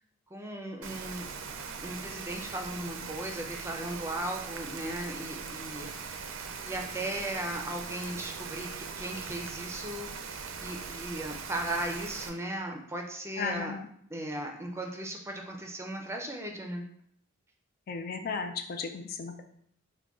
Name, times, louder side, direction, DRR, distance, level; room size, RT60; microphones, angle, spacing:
voice 1, 0.3-1.3 1.8-5.9 6.6-13.7 14.1-16.8, right 1 dB, 15° right, 2 dB, 0.5 m, -37 dB
Rain, 0.8-12.3, right 5 dB, 70° right, 0.4 m, -40 dB
voice 2, 13.4-13.9 17.9-19.4, left 5 dB, 50° left, 6 dB, 0.3 m, -35 dB
5.0 x 2.2 x 3.5 m, 0.66 s
head